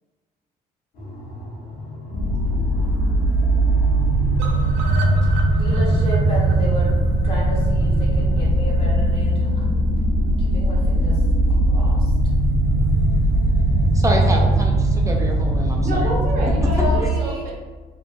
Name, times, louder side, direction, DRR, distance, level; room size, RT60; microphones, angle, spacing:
sound 1, 0.9-14.6, right 3 dB, 65° left, 1.0 m, -36 dB
sound 2, 2.1-17.0, right 1 dB, 85° left, 0.7 m, -19 dB
sound 3, 4.4-8.4 8.7-8.8 9.1-9.2 9.5-9.6, right 4 dB, 85° right, 0.4 m, -36 dB
voice 1, 5.6-6.9 7.2-9.8 10.4-11.2 11.6-12.1 16.8-17.5, equal, 30° left, -6 dB, 1.2 m, -31 dB
voice 2, 13.9-16.1, right 1 dB, 20° right, 0 dB, 0.3 m, -26 dB
voice 3, 15.8-17.5, right 1 dB, 55° right, -3 dB, 0.8 m, -28 dB
3.2 x 2.1 x 2.5 m, 1.4 s
cardioid pair, 110°, 17 cm